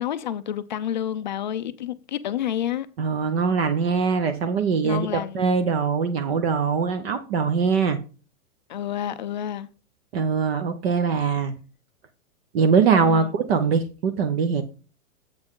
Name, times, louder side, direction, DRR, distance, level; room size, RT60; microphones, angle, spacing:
voice 1, 0.0-2.9 4.8-5.5 8.7-9.7 13.0-13.3, left 10 dB, 35° left, 0.4 m, -29 dB
voice 2, 3.0-8.0 10.1-11.5 12.5-14.6, right 5 dB, 45° right, 0.8 m, -22 dB
7.8 x 7.0 x 3.7 m
hypercardioid pair, 165°, 42 cm